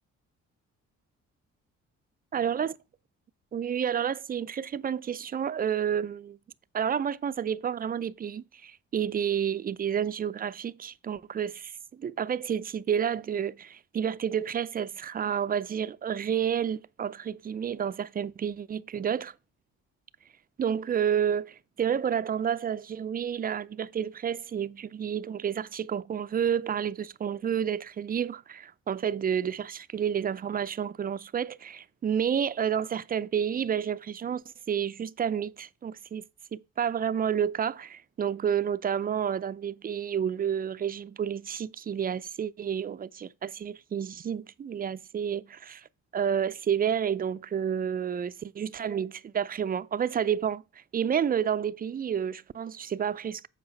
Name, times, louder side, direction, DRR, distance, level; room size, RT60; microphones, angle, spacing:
voice 1, 2.3-2.8 3.5-6.4 6.7-19.3 20.6-36.3 36.5-45.9 46.1-50.6 50.9-53.5, right 8 dB, 30° right, 0.4 m, -30 dB
8.0 x 4.8 x 5.2 m
cardioid pair, 90°, 30 cm